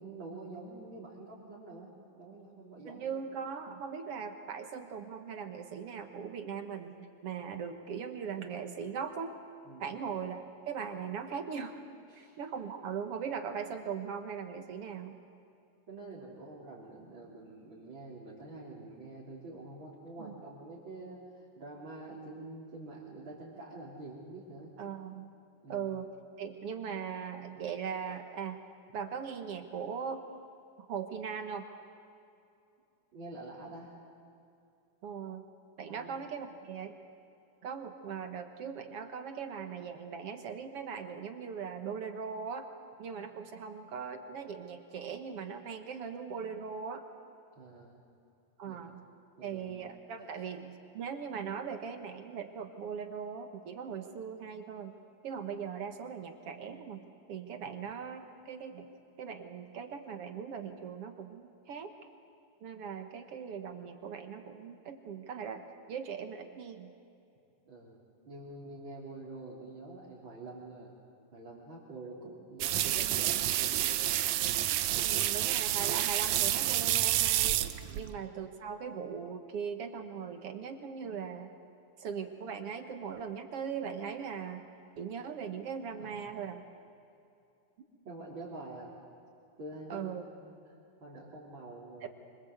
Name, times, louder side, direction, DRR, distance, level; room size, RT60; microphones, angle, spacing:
voice 1, 0.0-3.1 9.7-10.0 12.1-12.4 15.9-24.7 25.6-25.9 33.1-33.9 35.9-36.2 47.6-48.0 48.7-48.8 49.4-49.9 50.2-50.5 57.6-57.8 67.6-68.0 68.2-70.9 71.3-74.0 77.9-78.2 86.0-86.3 88.1-88.9 89.6-90.1 90.4-90.6 91.0-92.1, right 2 dB, 35° right, -6 dB, 4.0 m, -47 dB
voice 2, 2.9-9.4 9.8-11.8 12.2-15.2 20.2-20.4 24.8-25.3 25.7-26.1 26.4-28.6 28.9-30.2 30.9-31.7 35.0-35.4 35.8-37.0 37.6-42.7 43.0-47.0 48.6-49.1 49.4-54.9 55.2-58.9 59.2-61.9 62.6-66.9 74.8-77.6 77.9-81.5 82.0-84.6 85.0-86.6 89.9-90.2 92.0-92.1, right 6 dB, 55° right, 7 dB, 1.9 m, -40 dB
sound 1, 72.6-78.1, right 13 dB, 70° right, 2.0 m, -29 dB
25.5 x 25.5 x 8.1 m, 2.6 s
omnidirectional pair, 3.8 m